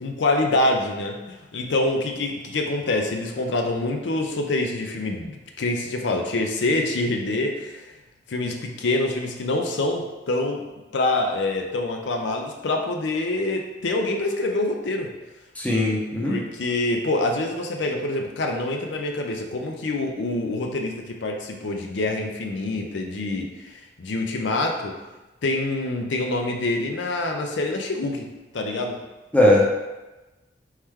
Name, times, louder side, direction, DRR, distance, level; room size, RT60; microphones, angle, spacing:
voice 1, 0.0-7.9 8.3-10.6 10.9-15.1 16.3-25.0 25.4-28.3 28.5-29.0, left 2 dB, 70° left, 3 dB, 0.5 m, -26 dB
voice 2, 15.6-16.4 29.3-29.7, left 1 dB, 5° left, -3 dB, 0.6 m, -19 dB
4.3 x 3.2 x 3.6 m, 1.1 s
head